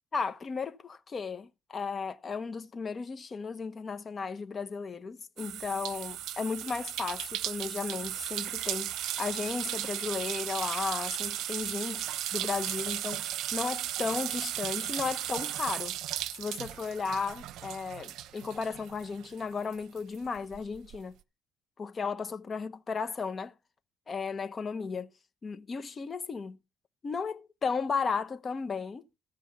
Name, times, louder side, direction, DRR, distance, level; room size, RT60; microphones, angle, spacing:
voice 1, 0.1-16.0 16.4-21.2 21.8-23.5 24.1-25.1 25.4-26.6 27.0-29.0, left 5 dB, 35° left, 1.2 m, -35 dB
sound 1, 5.4-19.4 19.7-21.0, right 12 dB, 75° right, 0.8 m, -36 dB
14.5 x 5.4 x 6.8 m
cardioid pair, 100°, 0 cm